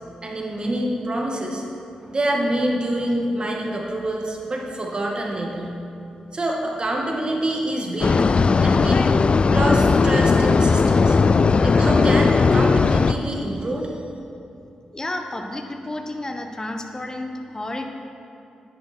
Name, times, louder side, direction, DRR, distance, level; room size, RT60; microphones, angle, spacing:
voice 1, 0.2-1.6 2.1-5.7 6.3-8.3 8.6-9.2 9.5-11.2 11.6-13.9, right 1 dB, 40° right, -1 dB, 2.0 m, -26 dB
sound 1, 8.0-13.1, left 4 dB, 45° left, 0.3 m, -17 dB
voice 2, 14.9-17.9, left 1 dB, 25° left, 4 dB, 1.2 m, -31 dB
10.0 x 9.7 x 4.5 m, 2.7 s
supercardioid pair, 50°, 2 cm